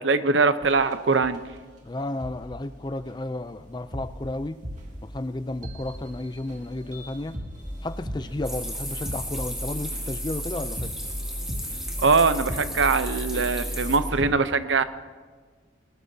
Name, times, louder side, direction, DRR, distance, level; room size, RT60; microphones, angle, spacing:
voice 1, 0.0-1.4 12.0-14.8, right 4 dB, 85° right, 11 dB, 0.8 m, -22 dB
sound 1, 0.6-0.9 1.2-1.4 2.2-2.4 3.1-14.3, equal, 40° right, 2.3 m, -36 dB
voice 2, 1.8-4.6 5.0-7.4 7.8-10.9, left 2 dB, 25° left, 12 dB, 0.4 m, -33 dB
sound 2, 8.4-14.0, equal, 5° right, 1.7 m, -35 dB
20.5 x 20.0 x 2.8 m, 1.5 s
head